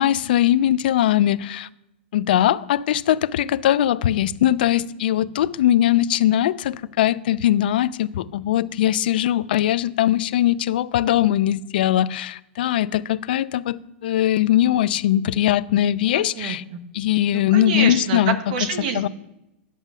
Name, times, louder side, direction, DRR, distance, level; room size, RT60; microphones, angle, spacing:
voice 1, 0.0-1.7 2.1-16.6 16.9-18.4 18.9-19.1, left 12 dB, 50° left, 0.4 m, -20 dB
voice 2, 16.1-16.8 17.3-19.1, right 6 dB, 40° right, 1.1 m, -27 dB
9.9 x 5.5 x 6.1 m
supercardioid pair, 180°, 6 cm